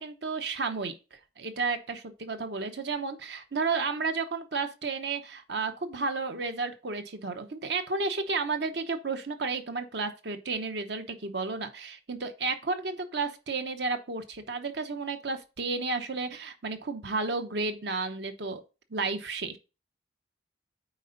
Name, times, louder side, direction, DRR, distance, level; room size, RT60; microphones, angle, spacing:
voice 1, 0.0-18.6 18.9-19.6, right 4 dB, 65° right, 0.9 m, -32 dB
9.1 x 4.3 x 3.9 m
head